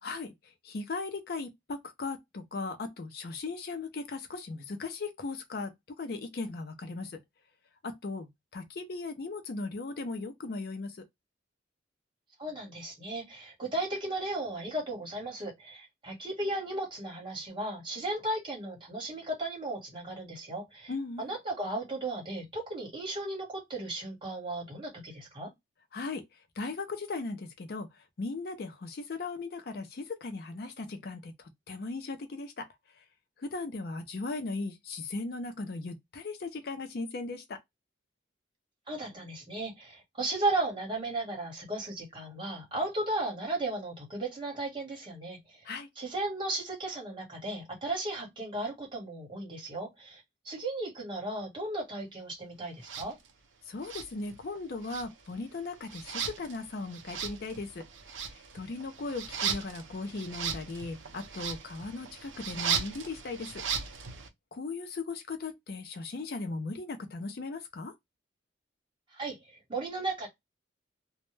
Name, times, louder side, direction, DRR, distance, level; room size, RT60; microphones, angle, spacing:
voice 1, 0.0-7.2 7.8-11.0 20.9-21.3 25.9-32.7 32.9-33.0 33.4-37.6 45.6-45.9 53.7-57.9 58.3-63.6 64.5-67.9, left 3 dB, 55° left, 0.4 m, -38 dB
voice 2, 12.4-20.9 21.2-25.5 38.9-45.6 46.0-53.2 69.1-70.3, right 2 dB, 25° right, 1.1 m, -35 dB
sound 1, 52.8-53.1 53.8-54.6 54.8-64.3, right 7 dB, 85° right, 0.5 m, -37 dB
2.1 x 2.1 x 3.0 m
head